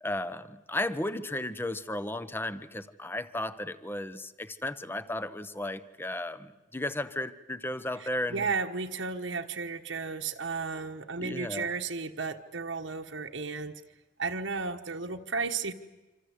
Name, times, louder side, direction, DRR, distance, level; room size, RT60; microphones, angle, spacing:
voice 1, 0.0-8.5 11.2-11.7, left 1 dB, 10° left, 14 dB, 0.9 m, -34 dB
voice 2, 8.0-13.8 14.2-15.7, right 4 dB, 70° right, 3 dB, 1.3 m, -34 dB
27.0 x 26.5 x 8.2 m, 1.1 s
head